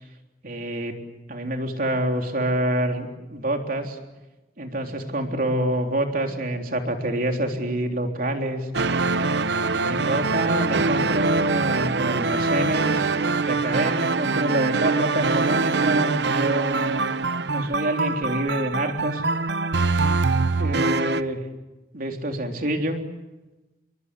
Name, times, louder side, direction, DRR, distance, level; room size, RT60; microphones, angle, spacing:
voice 1, 0.4-1.0 1.3-4.0 4.6-8.7 9.8-17.0 17.5-19.2 20.6-21.4 21.9-23.0, right 1 dB, 55° right, 3 dB, 3.6 m, -26 dB
sound 1, 8.7-21.2, right 3 dB, 70° right, 0.8 m, -24 dB
29.0 x 23.0 x 8.4 m, 1.1 s
head